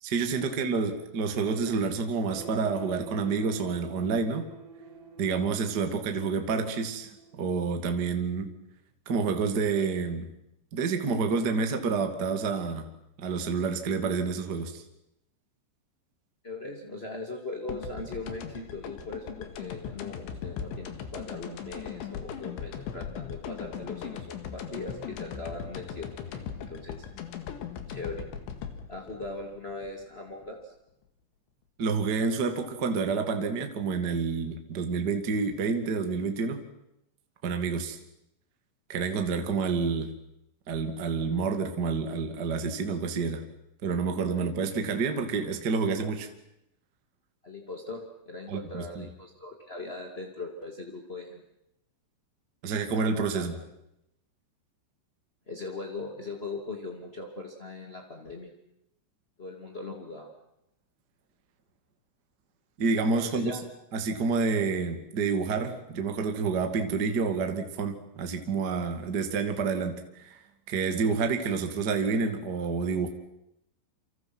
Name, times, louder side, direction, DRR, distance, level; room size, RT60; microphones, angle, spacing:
voice 1, 0.0-4.5 5.2-8.5 9.0-10.3 10.7-12.9 13.2-14.8 31.8-36.6 37.4-38.0 38.9-40.1 40.7-43.4 43.8-46.3 48.5-49.1 52.6-53.5 62.8-63.5 63.9-70.4 70.7-73.1, right 4 dB, 65° right, 6 dB, 1.0 m, -28 dB
sound 1, 2.3-8.1, right 4 dB, 80° right, 5.6 m, -47 dB
voice 2, 16.4-27.1 27.9-28.2 28.9-30.7 47.4-51.4 53.3-53.6 55.5-58.5 59.4-60.3 63.2-63.6, left 2 dB, 40° left, 1 dB, 0.8 m, -40 dB
sound 2, 17.7-30.5, left 8 dB, 70° left, 4.1 m, -39 dB
29.0 x 26.5 x 6.1 m, 0.82 s
omnidirectional pair, 5.7 m